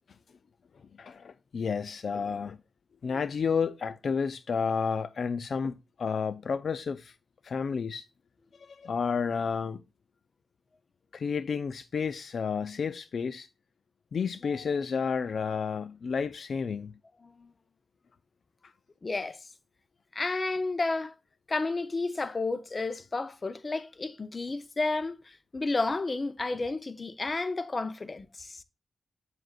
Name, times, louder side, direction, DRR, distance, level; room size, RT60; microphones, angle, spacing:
voice 1, 1.0-2.6 3.0-7.1 7.4-8.1 8.6-9.8 11.1-13.5 14.1-17.0 18.6-18.7, left 6 dB, 65° left, 0.4 m, -31 dB
voice 2, 14.4-14.8 17.2-17.5 19.0-19.4 20.1-21.1 21.5-28.6, left 3 dB, 35° left, 0.7 m, -32 dB
7.7 x 7.6 x 2.3 m
wide cardioid pair, 100°, 0 cm